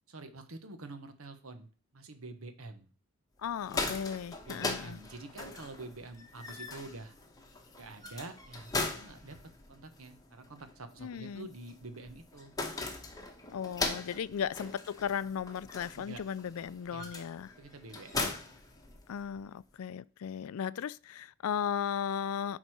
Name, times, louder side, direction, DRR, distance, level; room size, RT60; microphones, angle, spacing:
voice 1, 0.1-2.9 4.5-7.2 7.8-9.4 9.7-12.5 14.3-14.4 15.9-16.2 16.9-17.1 17.6-18.3, right 2 dB, 75° right, 1.1 m, -47 dB
voice 2, 3.4-5.0 11.0-11.5 13.5-17.5 19.1-22.6, left 8 dB, 75° left, 0.4 m, -36 dB
sound 1, 3.5-19.4, left 3 dB, 15° left, 1.0 m, -40 dB
11.0 x 4.0 x 4.7 m
head